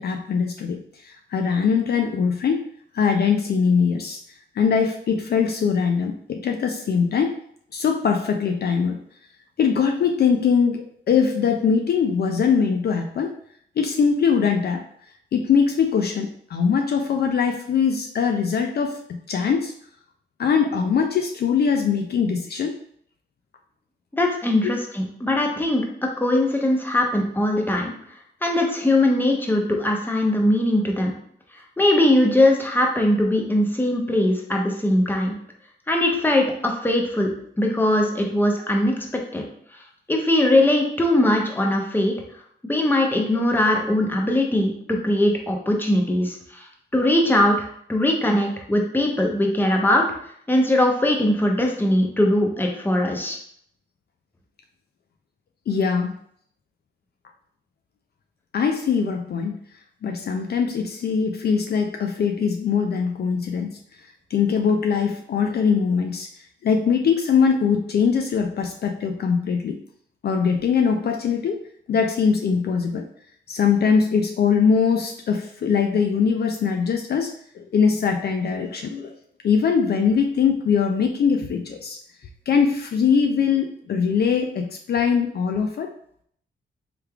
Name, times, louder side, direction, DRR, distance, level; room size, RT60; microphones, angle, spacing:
voice 1, 0.0-2.7 2.9-4.2 4.6-7.4 7.7-9.0 9.6-13.3 13.8-14.8 15.3-19.7 20.4-22.8 24.6-24.8 55.7-56.1 58.5-59.6 60.0-63.8 64.3-66.3 66.6-69.8 70.2-71.6 71.9-73.0 73.5-79.1 79.4-82.0 82.5-85.9, left 6 dB, 55° left, 4 dB, 0.4 m, -22 dB
voice 2, 24.1-25.8 26.2-27.9 28.4-31.1 31.8-35.4 35.9-37.3 37.6-38.9 39.3-39.4 40.1-42.1 42.6-46.4 46.9-50.0 50.5-53.4, left 1 dB, 10° left, 1 dB, 0.7 m, -20 dB
3.3 x 3.3 x 2.3 m, 0.64 s
cardioid pair, 75°, 19 cm